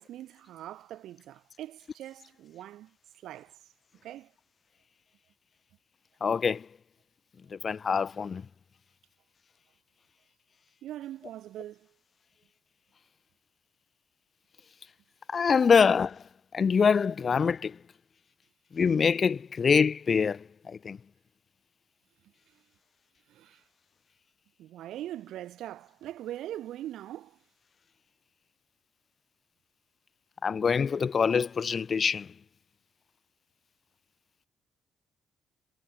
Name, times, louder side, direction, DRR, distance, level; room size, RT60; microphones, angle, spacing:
voice 1, 0.0-2.9 3.2-3.6 4.0-4.3 10.8-11.9 23.3-23.6 24.6-27.4, right 13 dB, 80° right, 3.1 m, -42 dB
voice 2, 6.2-6.6 7.5-8.4 15.3-16.2 16.5-17.8 18.7-21.0 30.4-32.3, left 6 dB, 40° left, 0.9 m, -25 dB
cardioid pair, 115°, 0 cm